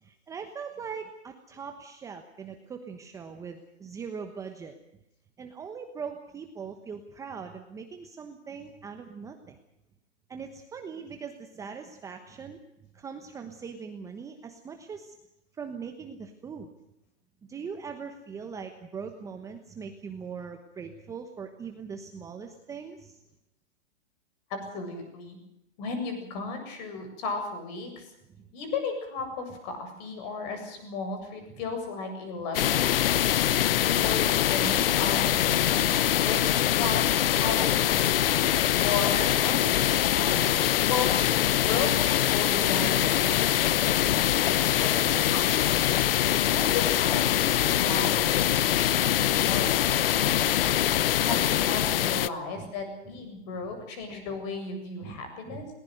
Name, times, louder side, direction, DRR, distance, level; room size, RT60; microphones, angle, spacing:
voice 1, 0.0-4.8 5.4-9.6 10.3-12.6 12.9-15.1 15.6-16.7 17.5-23.2 28.3-28.4 47.7-47.8 48.9-49.1 49.4-49.8 50.1-50.8 52.6-52.7 55.0-55.7, right 6 dB, 10° right, 6 dB, 1.1 m, -41 dB
voice 2, 24.5-25.4 25.8-28.1 28.5-33.0 33.8-36.4 36.8-37.1 37.4-38.5 38.7-45.7 46.5-50.1 51.2-55.6, left 4 dB, 35° left, 6 dB, 7.7 m, -35 dB
sound 1, 32.5-52.3, left 12 dB, 55° left, 0.9 m, -24 dB
20.5 x 19.5 x 7.8 m, 0.82 s
hypercardioid pair, 155°, 35 cm